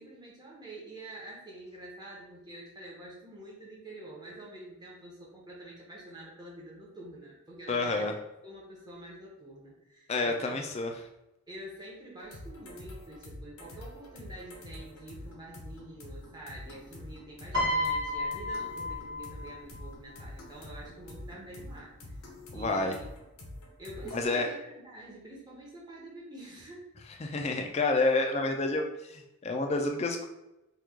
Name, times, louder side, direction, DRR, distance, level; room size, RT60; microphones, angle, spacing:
voice 1, 0.0-8.1 8.4-10.7 11.5-22.2 22.5-23.1 23.8-26.8, right 1 dB, 20° right, -4 dB, 0.8 m, -47 dB
voice 2, 7.7-8.1 10.1-10.9 22.5-23.0 24.1-24.5 27.2-30.3, left 3 dB, 30° left, 4 dB, 0.3 m, -29 dB
sound 1, 12.2-24.3, left 1 dB, 75° left, 0.7 m, -46 dB
Piano, 17.5-19.9 20.9-21.2, left 1 dB, 55° right, 1.2 m, -32 dB
3.0 x 2.3 x 3.5 m, 0.93 s
head